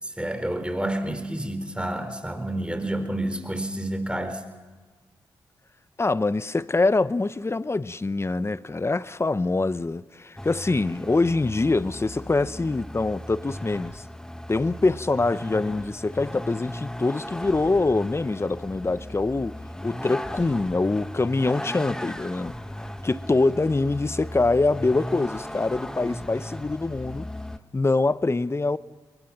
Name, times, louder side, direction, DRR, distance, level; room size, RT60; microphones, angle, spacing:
voice 1, 0.0-4.4, right 1 dB, 10° right, 4.0 m, -29 dB
voice 2, 6.0-14.0 14.5-19.5 19.8-22.5 23.0-27.3 27.7-28.8, left 3 dB, 30° left, 0.8 m, -24 dB
Vehicle, 10.4-27.6, left 1 dB, 5° left, 1.3 m, -37 dB
28.0 x 22.0 x 5.9 m
supercardioid pair, 40°, 9 cm